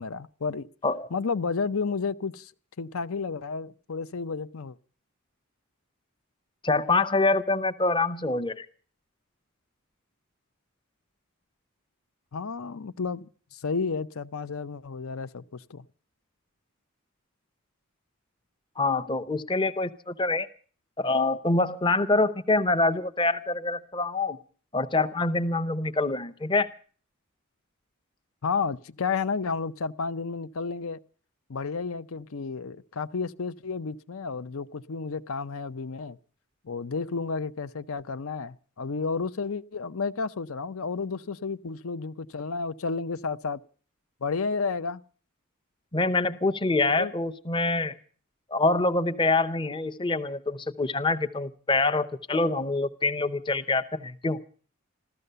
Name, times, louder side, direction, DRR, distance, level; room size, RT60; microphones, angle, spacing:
voice 1, 0.0-0.7 1.1-2.5 2.8-4.7 12.3-15.9 28.4-31.0 31.5-36.2 36.6-43.6 44.2-45.0 47.0-47.1, left 4 dB, 70° left, 0.6 m, -31 dB
voice 2, 6.6-8.7 18.8-20.5 21.0-24.4 24.7-26.7 45.9-47.9 48.5-54.4, left 3 dB, 20° left, 0.8 m, -25 dB
14.5 x 14.0 x 6.7 m
head